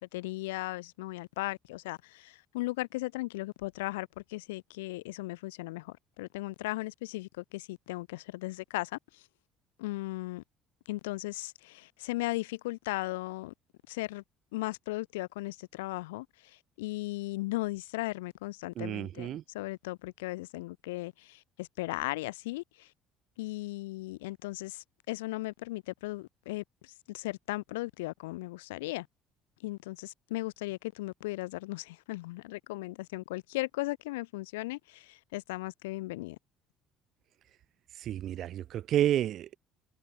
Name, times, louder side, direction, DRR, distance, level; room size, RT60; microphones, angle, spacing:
voice 1, 0.0-9.2 9.8-10.4 10.9-13.5 13.9-14.2 14.5-22.9 23.4-29.1 29.6-36.4, left 20 dB, 75° left, 2.7 m, -37 dB
voice 2, 18.8-19.4 38.0-39.5, right 12 dB, 55° right, 0.8 m, -30 dB
figure-of-eight pair, 55°, 0 cm